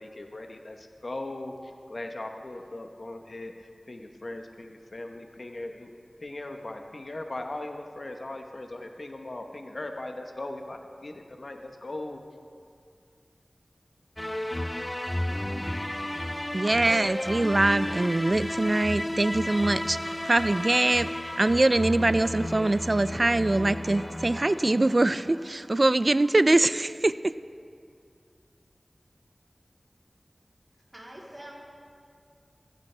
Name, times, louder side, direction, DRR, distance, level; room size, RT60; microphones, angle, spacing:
voice 1, 0.0-3.5 3.9-5.9 6.2-12.2, left 2 dB, 70° left, 4 dB, 0.9 m, -39 dB
sound 1, 14.2-25.5, left 1 dB, 25° left, 0.6 m, -33 dB
voice 2, 16.5-21.1 21.4-27.3, right 2 dB, 50° right, 15 dB, 0.3 m, -23 dB
voice 3, 30.9-31.6, right 1 dB, 25° right, -5 dB, 3.3 m, -44 dB
16.0 x 14.0 x 3.3 m, 2.3 s
wide cardioid pair, 40°, 0 cm